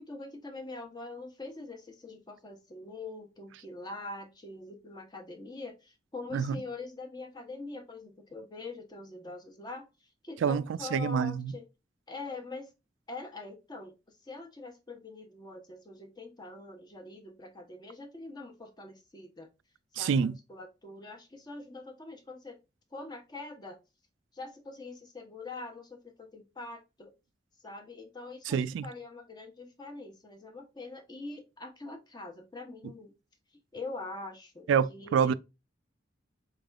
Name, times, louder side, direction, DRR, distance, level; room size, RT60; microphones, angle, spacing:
voice 1, 0.0-9.8 10.2-11.6 12.1-12.7 13.1-13.9 14.2-19.5 20.0-22.6 22.9-23.8 24.3-27.1 27.6-33.1 33.7-35.3, left 3 dB, 20° left, 0.9 m, -44 dB
voice 2, 10.9-11.5 20.0-20.4 28.5-28.9 34.7-35.3, right 6 dB, 90° right, 0.3 m, -27 dB
4.3 x 3.4 x 2.3 m
head